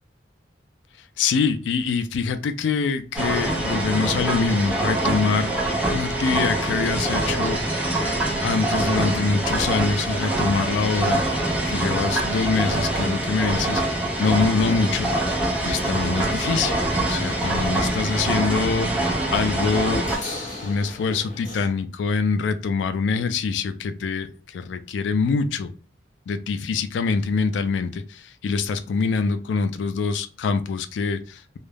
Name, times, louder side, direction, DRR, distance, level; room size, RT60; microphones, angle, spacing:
voice 1, 1.2-5.6 5.9-7.6 8.4-11.2 11.7-15.1 15.6-20.0 20.6-25.7 26.3-31.6, left 4 dB, 85° left, 0.3 m, -24 dB
sound 1, 3.2-20.2, right 1 dB, 5° right, 0.5 m, -24 dB
sound 2, 10.7-21.7, left 2 dB, 40° left, 0.9 m, -43 dB
2.3 x 2.0 x 3.2 m
head